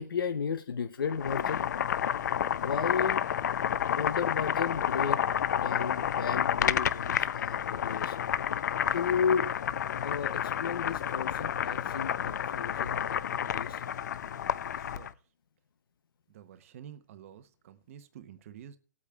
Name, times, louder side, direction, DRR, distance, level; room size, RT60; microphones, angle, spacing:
voice 1, 0.0-1.6 2.6-3.2 4.0-5.2 5.5-8.2 8.9-9.5 10.0-13.8, left 6 dB, 90° left, 8 dB, 0.7 m, -33 dB
Boiling, 1.0-15.1, left 9 dB, 55° left, 0.5 m, -30 dB
voice 2, 14.8-15.2 16.3-18.8, right 9 dB, 40° right, 11 dB, 0.8 m, -50 dB
19.5 x 8.4 x 2.3 m, 0.39 s
hypercardioid pair, 165°, 11 cm